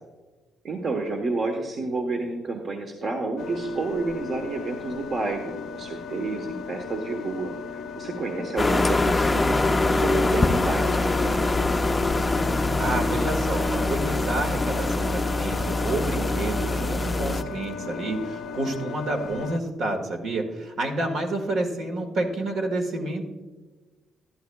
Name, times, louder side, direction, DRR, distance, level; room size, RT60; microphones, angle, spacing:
voice 1, 0.6-11.6, right 3 dB, 50° right, 3 dB, 1.1 m, -30 dB
sound 1, 3.4-19.6, left 6 dB, 70° left, 0.5 m, -37 dB
sound 2, 8.6-17.4, left 2 dB, 20° left, 0.4 m, -24 dB
voice 2, 12.8-23.2, right 2 dB, 70° right, 4 dB, 1.7 m, -29 dB
12.5 x 11.0 x 2.3 m, 1.2 s
cardioid pair, 90°, 0 cm